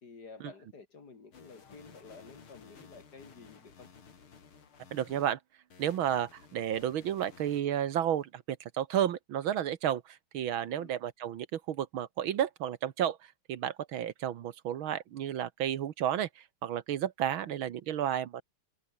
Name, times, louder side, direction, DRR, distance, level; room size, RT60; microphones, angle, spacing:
voice 1, 0.0-3.9 10.7-10.9 17.4-17.6, left 4 dB, 50° left, 3.1 m, -51 dB
sound 1, 1.3-5.3 5.7-8.2, left 6 dB, 75° left, 3.5 m, -56 dB
voice 2, 4.9-5.4 5.8-13.2 13.5-18.4, right 10 dB, 70° right, 1.8 m, -32 dB
omnidirectional pair, 2.4 m